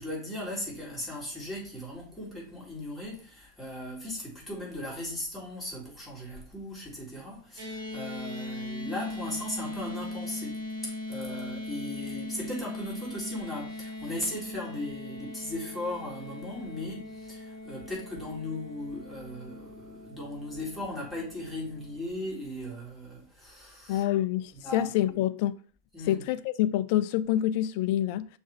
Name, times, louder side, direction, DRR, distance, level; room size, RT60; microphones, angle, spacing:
voice 1, 0.0-24.0 24.6-24.9 25.9-26.2, left 1 dB, 5° left, 3.7 m, -37 dB
sound 1, 7.6-22.0, left 2 dB, 50° right, 2.1 m, -40 dB
voice 2, 23.9-25.6 26.0-28.3, left 13 dB, 45° left, 0.5 m, -27 dB
6.2 x 3.5 x 5.2 m
figure-of-eight pair, 90°, 0 cm